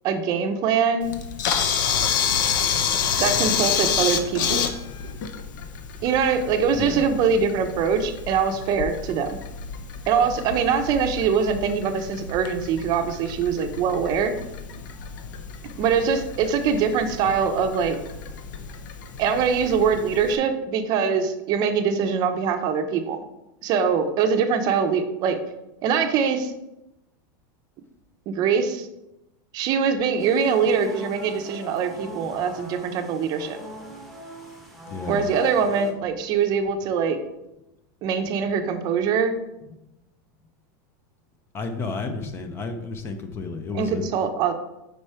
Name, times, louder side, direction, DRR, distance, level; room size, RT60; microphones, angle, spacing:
voice 1, 0.0-1.1 3.2-4.7 6.0-9.4 10.1-14.3 15.8-18.0 19.2-23.2 23.6-25.4 25.8-26.5 28.3-28.9 29.5-33.6 35.1-37.2 38.0-39.3 43.7-44.5, right 6 dB, 35° right, 7 dB, 0.6 m, -23 dB
Camera, 1.0-20.4, left 7 dB, 65° left, 0.8 m, -29 dB
sound 1, 30.2-35.9, right 1 dB, ahead, 1.0 m, -42 dB
voice 2, 34.9-35.2 41.5-44.1, left 4 dB, 20° left, 7 dB, 0.5 m, -31 dB
5.4 x 4.8 x 4.3 m, 0.91 s
supercardioid pair, 155°, 11 cm